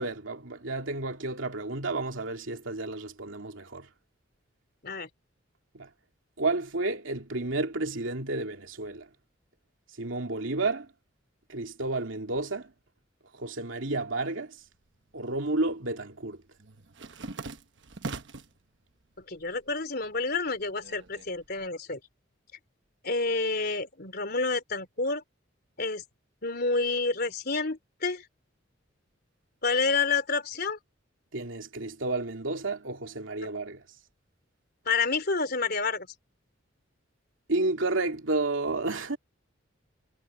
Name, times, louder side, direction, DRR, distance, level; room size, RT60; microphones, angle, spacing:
voice 1, 0.0-3.9 5.7-5.9 6.4-9.1 10.0-10.9 11.5-12.7 13.3-14.6 15.1-16.4 31.3-33.8 37.5-39.2, right 2 dB, 85° right, 2.6 m, -31 dB
sound 1, 14.7-15.5 15.8-18.6 19.0-19.7 20.0-21.7, right 3 dB, 65° right, 1.2 m, -42 dB
voice 2, 19.2-22.0 23.0-25.2 25.8-26.0 26.4-28.2 29.6-30.8 34.9-36.1, left 4 dB, 55° left, 3.5 m, -29 dB
head